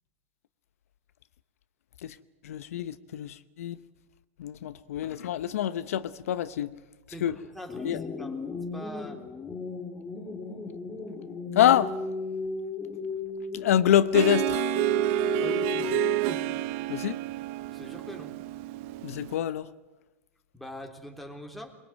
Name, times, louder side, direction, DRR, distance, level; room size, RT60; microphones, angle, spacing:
voice 1, 2.4-3.8 4.4-6.7 7.2-7.4 7.8-8.0 11.5-11.9 13.5-14.6 16.9-17.2 19.0-19.7, left 11 dB, 80° left, 0.8 m, -26 dB
voice 2, 7.1-8.4 8.7-9.3 15.4-16.0 17.7-18.3 20.5-21.7, equal, ahead, 3.3 m, -43 dB
sound 1, 7.7-16.6, left 3 dB, 20° left, 2.4 m, -34 dB
Harp, 14.1-19.3, right 18 dB, 55° right, 0.8 m, -29 dB
23.0 x 22.0 x 9.2 m
hypercardioid pair, 115°, 8 cm